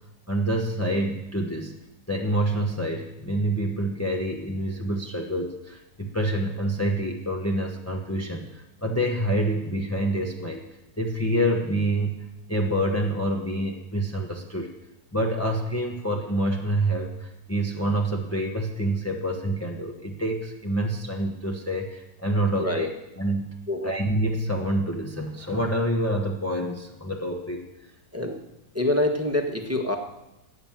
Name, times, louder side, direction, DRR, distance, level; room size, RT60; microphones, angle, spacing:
voice 1, 0.3-1.7 2.1-10.7 11.0-14.7 15.1-22.9 23.2-23.5 23.8-27.6, right 1 dB, 10° left, 1 dB, 1.0 m, -27 dB
voice 2, 28.7-30.0, left 1 dB, 10° right, 2 dB, 1.4 m, -25 dB
16.5 x 9.0 x 7.5 m, 0.93 s
omnidirectional pair, 1.8 m